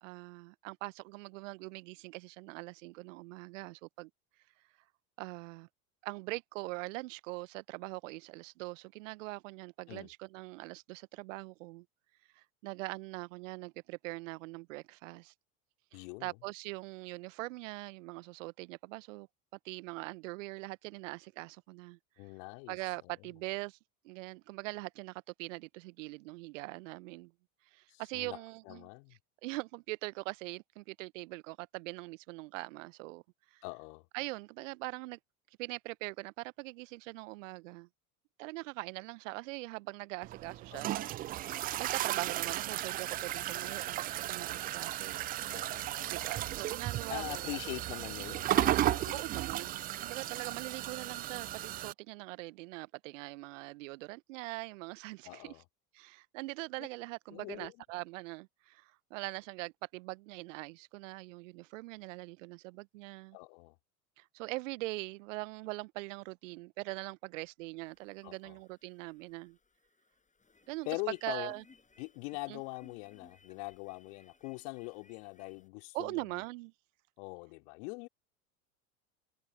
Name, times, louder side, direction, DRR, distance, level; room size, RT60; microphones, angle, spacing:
voice 1, 0.0-4.1 5.2-5.7 6.0-11.8 12.3-15.3 15.9-19.3 19.6-22.0 22.7-23.8 24.0-27.3 27.7-28.9 29.4-33.2 33.5-33.6 34.1-35.2 35.6-37.9 38.4-40.9 41.8-45.2 46.1-47.5 49.1-55.5 55.9-63.4 64.2-69.6 70.7-70.9 71.2-71.6 72.5-72.6 75.9-76.7, right 23 dB, 60° right, 1.1 m, -42 dB
voice 2, 15.9-16.4 22.2-22.8 23.0-23.1 27.9-28.4 28.6-29.2 33.6-34.1 40.7-41.1 45.5-46.2 47.1-49.4 55.2-55.6 56.8-56.9 57.3-57.7 63.3-63.7 68.2-68.6 70.8-71.5 72.0-76.4 77.2-78.1, left 34 dB, 55° left, 2.9 m, -43 dB
sound 1, 40.2-51.9, right 14 dB, 20° right, 0.4 m, -35 dB
sound 2, 67.8-75.7, left 4 dB, 15° left, 5.3 m, -64 dB
figure-of-eight pair, 80°, 43 cm